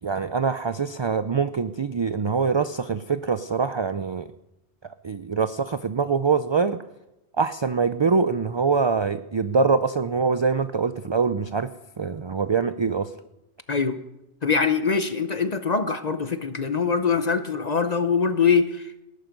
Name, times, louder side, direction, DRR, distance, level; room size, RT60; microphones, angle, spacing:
voice 1, 0.0-4.3 5.0-6.8 7.4-11.7 12.0-13.1, right 5 dB, 40° right, 11 dB, 0.4 m, -24 dB
voice 2, 13.7-14.0 14.4-19.0, left 5 dB, 40° left, 10 dB, 0.9 m, -23 dB
19.5 x 11.5 x 5.3 m, 0.94 s
omnidirectional pair, 1.1 m